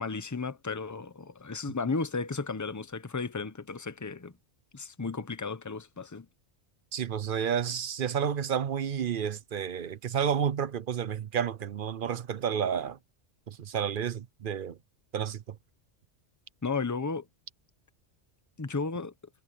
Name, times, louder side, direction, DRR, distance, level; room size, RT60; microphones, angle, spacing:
voice 1, 0.0-4.3 4.7-6.3 16.6-17.3 18.6-19.1, left 4 dB, 15° left, 0.8 m, -34 dB
voice 2, 6.9-13.0 13.5-14.8 15.1-15.6, right 8 dB, 55° right, 0.8 m, -31 dB
omnidirectional pair, 1.2 m